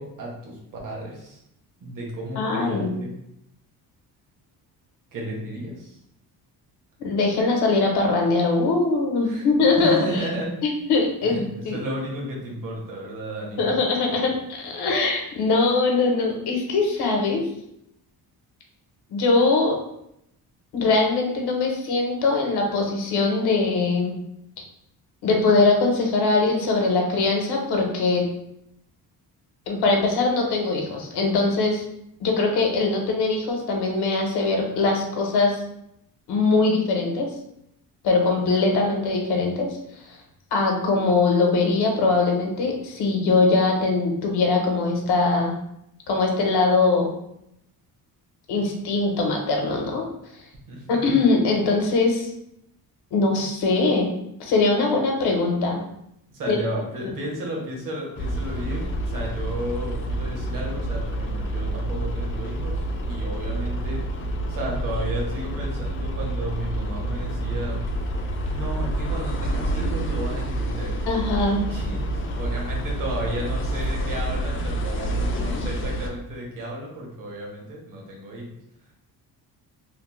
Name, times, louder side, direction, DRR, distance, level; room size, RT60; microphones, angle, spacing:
voice 1, 0.0-1.4 1.8-3.1 5.1-6.0 9.2-9.4 9.8-10.5 11.2-13.7 14.2-14.3 50.7-50.9 56.3-64.0 64.5-67.8 68.5-70.9 71.7-78.4, right 1 dB, 55° right, -2 dB, 1.1 m, -33 dB
voice 2, 2.4-2.9 7.0-10.2 10.6-11.8 13.6-17.4 19.1-19.8 20.7-24.2 25.2-28.2 29.7-31.8 32.2-35.6 36.3-37.3 38.0-40.2 40.5-45.6 46.1-47.1 48.5-50.1 50.9-52.3 53.1-54.1 54.4-55.8 56.5-56.6 57.0-57.1 71.1-71.6, left 3 dB, 80° left, 1 dB, 0.8 m, -22 dB
sound 1, 58.2-76.1, right 1 dB, 35° left, 0.4 m, -28 dB
3.1 x 2.0 x 3.0 m, 0.80 s
cardioid pair, 125°, 39 cm